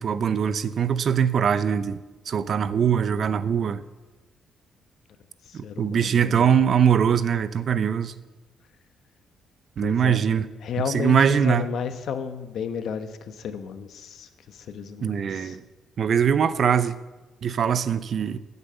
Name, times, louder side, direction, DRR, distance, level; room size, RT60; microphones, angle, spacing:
voice 1, 0.0-2.0 2.3-3.8 5.5-8.1 9.8-10.4 10.9-11.7 15.0-15.6 16.0-16.9 17.4-18.4, right 7 dB, 55° right, 14 dB, 0.7 m, -22 dB
voice 2, 5.4-6.7 9.8-10.3 10.6-15.6, left 7 dB, 70° left, 10 dB, 1.1 m, -33 dB
14.5 x 8.2 x 6.8 m, 1.2 s
cardioid pair, 90°, 0 cm